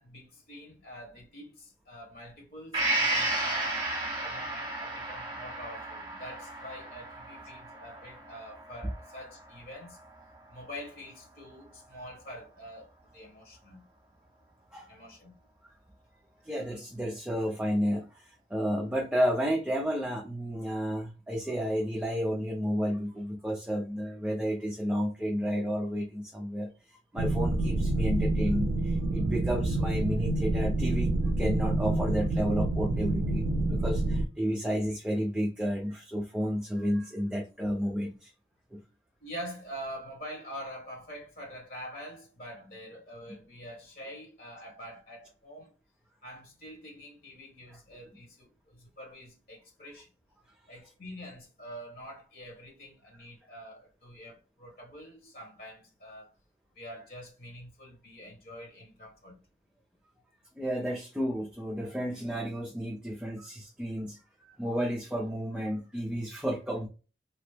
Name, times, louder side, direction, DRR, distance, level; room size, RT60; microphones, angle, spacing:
voice 1, 0.0-3.9 4.2-10.0 10.5-13.8 14.9-15.3 39.2-45.7 46.2-50.1 50.7-56.3 56.7-59.4, equal, 55° left, 1.3 m, -45 dB
Gong, 2.7-10.4 10.8-10.9, right 2 dB, 25° right, 0.9 m, -34 dB
voice 2, 16.4-31.1 31.4-38.3 38.7-38.8 47.7-47.8 60.6-66.9, equal, 5° right, 0.4 m, -32 dB
sound 1, 27.2-34.2, right 2 dB, 75° right, 0.4 m, -28 dB
2.9 x 2.0 x 3.2 m
head